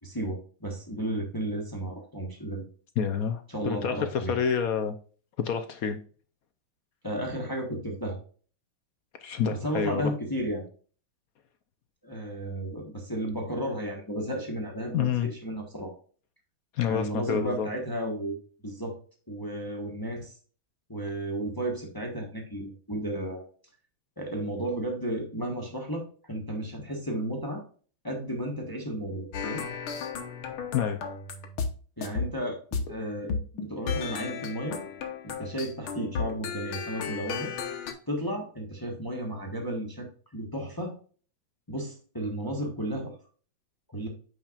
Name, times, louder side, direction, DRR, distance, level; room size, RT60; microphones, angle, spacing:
voice 1, 0.0-2.6 3.5-4.4 7.0-8.2 9.5-10.6 12.0-16.0 16.8-18.9 19.3-20.3 20.9-23.4 24.2-27.6 28.0-29.6 32.0-33.4 33.7-34.8 35.2-37.5 38.1-40.9 41.7-43.1 43.9-44.1, right 1 dB, 15° left, 1 dB, 1.1 m, -33 dB
voice 2, 3.0-5.0 5.4-6.0 9.2-10.1 14.9-15.3 16.7-17.7 30.7-31.0, left 7 dB, 70° left, 8 dB, 0.9 m, -28 dB
sound 1, 29.3-31.7 32.0-32.9 33.3-37.9, left 5 dB, 85° left, 1.9 m, -34 dB
8.8 x 5.7 x 2.5 m, 0.41 s
omnidirectional pair, 2.3 m